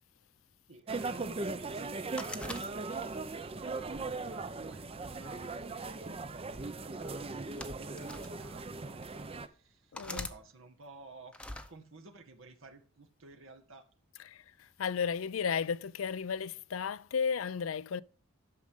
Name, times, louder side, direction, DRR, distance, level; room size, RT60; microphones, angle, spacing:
voice 1, 0.7-13.8, right 3 dB, 80° right, 1.7 m, -55 dB
sound 1, 0.9-9.5, right 3 dB, 30° right, 0.6 m, -39 dB
sound 2, 2.2-3.2 3.9-5.0 6.0-6.3 7.3-8.3 9.0-9.1 9.9-10.4 11.3-11.7, left 1 dB, 5° left, 0.8 m, -44 dB
voice 2, 9.9-10.3 14.2-18.0, left 6 dB, 80° left, 0.5 m, -34 dB
12.0 x 6.4 x 3.7 m
head